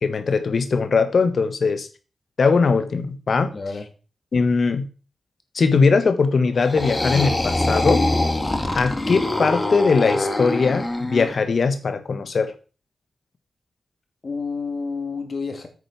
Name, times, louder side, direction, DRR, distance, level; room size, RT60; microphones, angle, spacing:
voice 1, 0.0-1.9 2.4-3.5 4.3-4.9 5.5-8.0 8.7-12.5, left 4 dB, 65° left, 1.4 m, -20 dB
voice 2, 3.5-3.9 14.2-15.7, left 4 dB, 50° left, 2.6 m, -29 dB
sound 1, 6.6-11.4, left 2 dB, 25° left, 2.0 m, -23 dB
9.2 x 6.4 x 6.0 m
cardioid pair, 70°, 0 cm